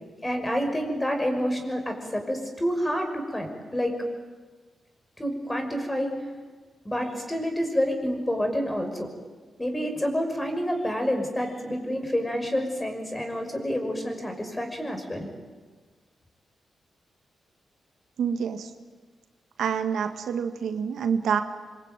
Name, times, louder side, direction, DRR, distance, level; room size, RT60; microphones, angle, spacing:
voice 1, 0.2-4.1 5.2-6.1 6.8-9.1 9.6-15.3, equal, 15° left, 5 dB, 5.8 m, -28 dB
voice 2, 18.2-18.7 19.6-21.4, right 7 dB, 85° right, 7 dB, 1.9 m, -27 dB
25.5 x 24.0 x 9.2 m, 1.4 s
cardioid pair, 100°, 0 cm